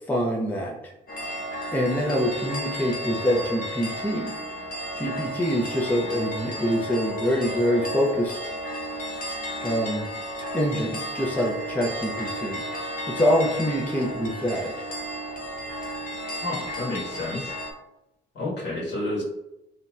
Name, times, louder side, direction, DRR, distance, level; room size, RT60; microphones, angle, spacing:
voice 1, 0.1-0.8 1.7-4.3 5.0-8.4 9.6-10.1 10.5-12.6 13.1-14.7, equal, 10° left, -2 dB, 0.5 m, -25 dB
sound 1, 1.1-17.7, right 1 dB, 45° left, 0.7 m, -33 dB
voice 2, 16.4-17.5 18.3-19.2, left 2 dB, 60° left, -5 dB, 1.3 m, -30 dB
3.1 x 2.6 x 2.2 m, 0.90 s
cardioid pair, 90°, 20 cm